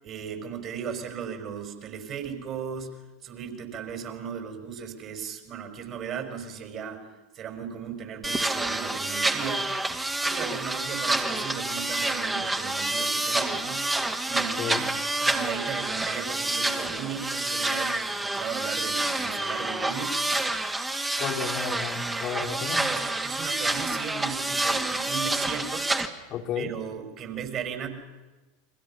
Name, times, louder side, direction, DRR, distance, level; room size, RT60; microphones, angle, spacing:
voice 1, 0.0-7.1 7.3-9.8 10.2-13.9 14.2-15.0 15.2-20.2 22.5-22.6 22.9-25.9 26.6-28.0, right 7 dB, 40° right, 5 dB, 5.4 m, -36 dB
sound 1, 8.2-26.1, right 2 dB, 10° right, 2.1 m, -28 dB
voice 2, 21.2-22.9 26.3-26.7, left 7 dB, 40° left, 3 dB, 2.1 m, -32 dB
30.0 x 23.5 x 5.8 m, 1.2 s
figure-of-eight pair, 80°, 0 cm